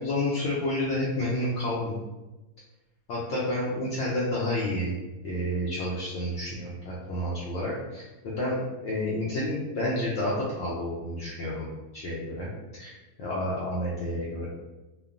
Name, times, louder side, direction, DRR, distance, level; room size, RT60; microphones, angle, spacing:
voice 1, 0.0-2.0 3.1-4.9 5.2-11.7 11.9-12.5 12.8-12.9 13.2-14.5, left 1 dB, 65° left, -6 dB, 0.7 m, -30 dB
3.1 x 2.1 x 2.4 m, 1.1 s
omnidirectional pair, 1.5 m